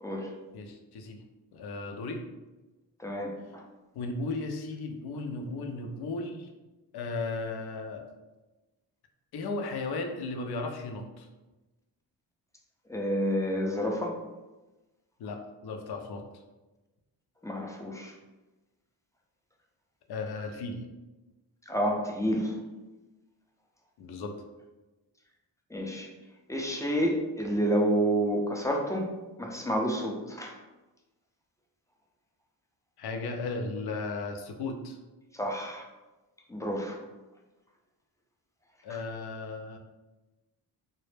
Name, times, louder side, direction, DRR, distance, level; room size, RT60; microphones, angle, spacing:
voice 1, 0.5-1.2 1.5-2.2 3.9-6.5 6.9-8.1 9.3-11.3 15.2-16.2 20.1-20.8 24.0-24.3 33.0-35.0 38.8-39.8, left 3 dB, 60° left, 4 dB, 0.5 m, -35 dB
voice 2, 3.0-3.3 12.9-14.1 17.4-18.1 21.7-22.5 25.7-26.1 26.5-29.1 29.4-30.5 35.4-35.8 36.5-37.0, equal, 5° left, 0 dB, 0.4 m, -29 dB
2.0 x 2.0 x 3.1 m, 1.1 s
supercardioid pair, 50°, 45 cm